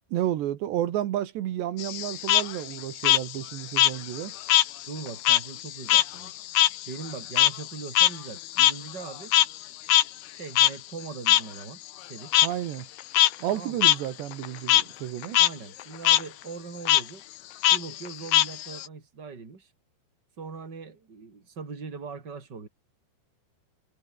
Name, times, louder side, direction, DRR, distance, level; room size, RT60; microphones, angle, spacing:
voice 1, 0.1-4.3 12.4-12.9 13.4-15.4, right 12 dB, 80° right, 3.8 m, -31 dB
Frog, 1.8-4.7 5.0-9.6 9.9-10.0 10.6-10.7 11.3-11.4 12.3-12.5 13.0-13.3 13.8-14.0 14.3-14.8 15.2-15.5 15.8-16.2 16.9-17.0 17.6-18.9, left 14 dB, 70° left, 3.1 m, -21 dB
voice 2, 4.9-6.3 6.9-9.3 10.3-12.3 13.5-13.9 15.4-17.2 17.7-19.7 20.4-22.7, right 5 dB, 25° right, 4.1 m, -40 dB
omnidirectional pair, 4.9 m